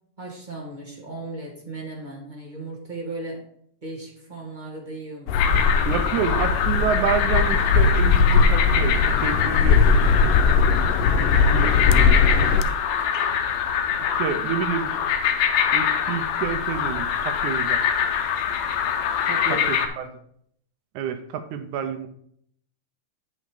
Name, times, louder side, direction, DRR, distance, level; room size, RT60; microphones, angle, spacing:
voice 1, 0.2-3.4 3.8-5.6 11.0-11.4 19.3-20.1, right 2 dB, 20° right, -3 dB, 1.2 m, -36 dB
sound 1, 5.3-12.6, left 5 dB, 90° left, 2.2 m, -19 dB
sound 2, 5.3-19.9, left 8 dB, 70° left, 1.8 m, -24 dB
voice 2, 5.8-10.1 11.2-12.2 14.0-14.9 15.7-17.8 19.5-20.1 21.0-22.1, right 8 dB, 75° right, 8 dB, 1.9 m, -28 dB
8.4 x 5.4 x 4.9 m, 0.66 s
omnidirectional pair, 3.8 m